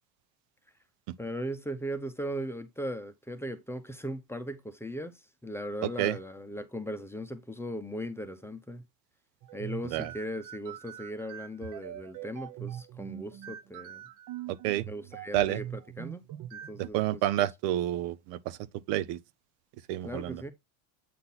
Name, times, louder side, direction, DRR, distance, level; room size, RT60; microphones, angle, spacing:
voice 1, 1.2-8.8 9.5-14.0 14.9-15.7 16.0-17.2 20.0-20.5, equal, 5° left, 0.8 m, -38 dB
voice 2, 5.8-6.2 9.8-10.1 14.5-14.9 15.3-15.6 16.9-18.6 18.9-19.2 19.9-20.4, right 14 dB, 75° right, 0.8 m, -29 dB
sound 1, 9.4-16.9, right 11 dB, 40° right, 0.7 m, -42 dB
8.5 x 3.9 x 4.1 m
supercardioid pair, 110°, 48 cm